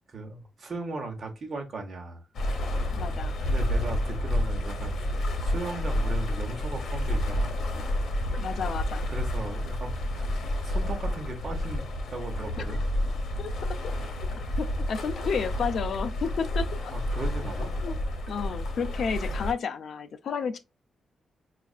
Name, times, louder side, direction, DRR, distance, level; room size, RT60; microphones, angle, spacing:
voice 1, 0.1-2.2 3.4-7.7 9.1-10.4 10.6-12.8 13.9-14.1 16.9-17.8, right 3 dB, 35° right, 0.9 m, -38 dB
sound 1, 2.3-19.5, left 1 dB, 75° left, 0.9 m, -30 dB
voice 2, 2.9-3.4 8.4-9.1 12.6-12.7 13.4-13.5 14.6-16.9 17.8-18.0 18.3-20.6, left 6 dB, 55° left, 0.4 m, -31 dB
5.2 x 2.4 x 2.4 m
wide cardioid pair, 175°, 0 cm